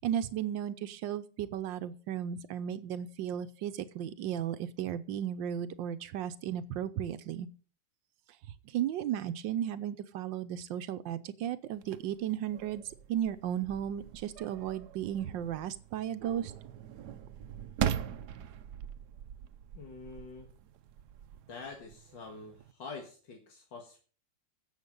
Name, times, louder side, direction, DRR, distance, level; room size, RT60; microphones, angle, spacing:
voice 1, 0.0-7.5 8.6-12.8 13.1-16.5, right 10 dB, 85° right, 11 dB, 1.4 m, -35 dB
sound 1, 11.8-22.7, right 9 dB, 70° right, 1.2 m, -41 dB
voice 2, 19.7-20.5 21.5-24.0, left 4 dB, 85° left, 2 dB, 2.4 m, -46 dB
16.0 x 7.2 x 5.4 m, 0.41 s
omnidirectional pair, 2.0 m